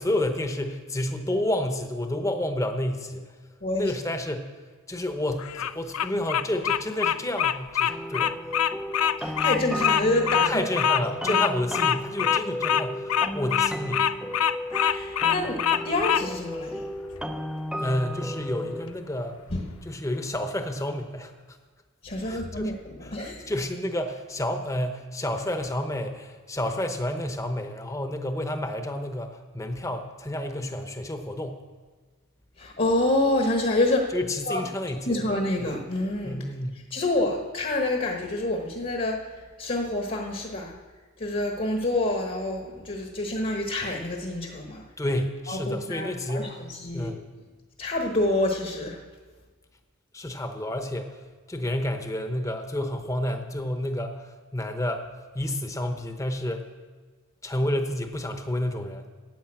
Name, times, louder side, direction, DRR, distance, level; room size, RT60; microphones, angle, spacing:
voice 1, 0.0-3.3 3.7-4.5 4.9-8.3 10.4-14.1 17.8-19.4 19.8-21.3 22.2-22.7 23.0-31.6 34.1-35.2 35.6-35.7 36.2-36.8 45.0-46.6 46.9-47.2 50.1-51.2 51.5-55.1 55.3-56.7 57.4-59.1, left 1 dB, 15° left, 6 dB, 0.9 m, -30 dB
voice 2, 3.6-3.9 9.2-10.6 14.8-16.9 19.5-19.7 22.0-23.5 32.6-34.1 34.5-34.6 35.1-36.4 36.9-40.8 41.2-44.8 45.5-47.1 47.8-49.0, left 2 dB, 40° left, 2 dB, 1.1 m, -27 dB
Bird vocalization bird call bird song, 5.4-16.2, left 9 dB, 85° left, 0.4 m, -24 dB
sound 1, 7.9-18.9, equal, 5° right, 0.5 m, -34 dB
10.5 x 9.2 x 7.6 m, 1.4 s
head